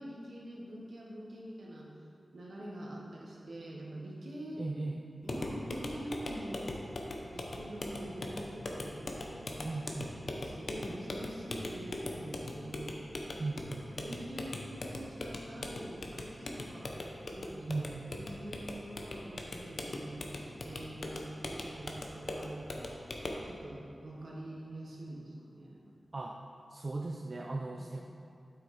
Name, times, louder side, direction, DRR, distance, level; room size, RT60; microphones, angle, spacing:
voice 1, 0.0-1.9 2.3-4.7 5.2-6.7 7.2-9.9 10.3-12.9 13.9-16.9 17.3-22.9 23.4-25.8 27.7-28.0, right 1 dB, 70° right, -3 dB, 1.6 m, -45 dB
voice 2, 4.6-5.0 9.6-10.1 13.4-13.9 17.7-18.0 26.1-26.4 26.7-28.0, right 2 dB, 50° right, 1 dB, 0.5 m, -37 dB
sound 1, 5.2-23.5, left 2 dB, 65° left, 0.9 m, -41 dB
8.1 x 6.1 x 4.3 m, 2.8 s
cardioid pair, 55°, 0 cm